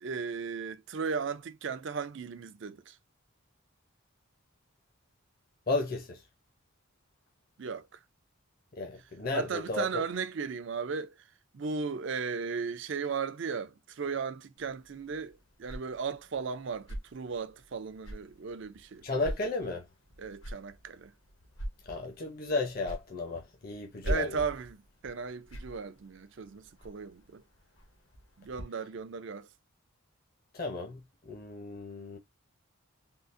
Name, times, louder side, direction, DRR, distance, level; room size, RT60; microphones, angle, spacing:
voice 1, 0.0-3.0 7.6-8.0 9.3-11.3 11.5-19.0 20.2-21.1 24.0-27.4 28.4-29.5, right 5 dB, 60° right, 0.4 m, -36 dB
voice 2, 5.7-6.2 8.7-9.9 19.0-19.9 21.9-24.4 30.5-32.2, left 3 dB, 45° left, 0.8 m, -34 dB
sound 1, 14.6-28.6, right 1 dB, 65° left, 1.1 m, -44 dB
3.8 x 2.4 x 2.5 m
head